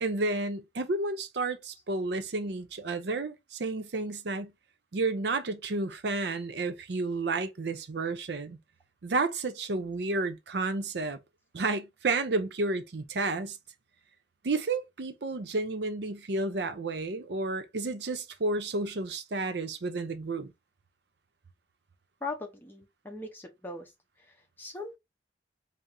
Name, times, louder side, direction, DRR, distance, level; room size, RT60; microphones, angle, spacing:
voice 1, 0.0-4.5 4.9-8.6 9.0-11.2 11.5-13.6 14.4-20.5, right 3 dB, 70° right, 0.6 m, -31 dB
voice 2, 22.2-23.9 24.2-25.0, left 3 dB, 10° left, 0.8 m, -40 dB
4.1 x 2.0 x 3.7 m
head